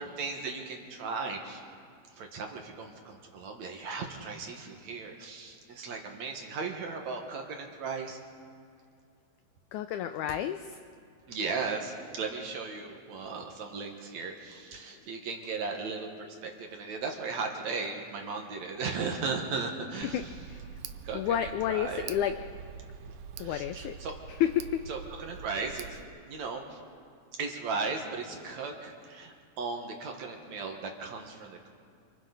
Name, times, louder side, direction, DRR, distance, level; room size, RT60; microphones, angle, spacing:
voice 1, 0.0-1.6 2.2-8.2 11.3-20.2 21.0-22.2 23.4-24.1 24.9-26.8 27.4-31.7, right 4 dB, 60° right, 2 dB, 2.5 m, -36 dB
voice 2, 9.7-10.8 20.0-20.6 21.1-22.3 23.4-24.0 24.3-24.8, left 10 dB, 85° left, 9 dB, 1.7 m, -30 dB
Tick, 20.0-26.0, right 7 dB, 80° right, 1.8 m, -45 dB
27.0 x 25.0 x 4.0 m, 2.3 s
omnidirectional pair, 4.1 m